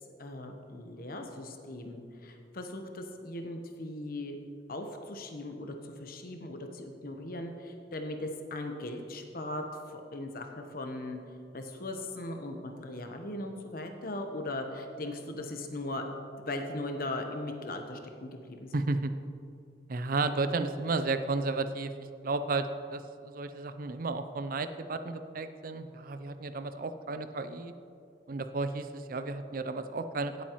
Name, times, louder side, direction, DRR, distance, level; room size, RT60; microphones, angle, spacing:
voice 1, 0.2-4.4 4.7-11.2 11.5-16.0 16.4-18.7, left 1 dB, 55° left, 4 dB, 1.0 m, -39 dB
voice 2, 18.7-19.1 19.9-21.9 22.2-27.7 28.3-30.4, right 3 dB, 55° right, 10 dB, 0.5 m, -33 dB
16.5 x 8.4 x 3.1 m, 2.4 s
head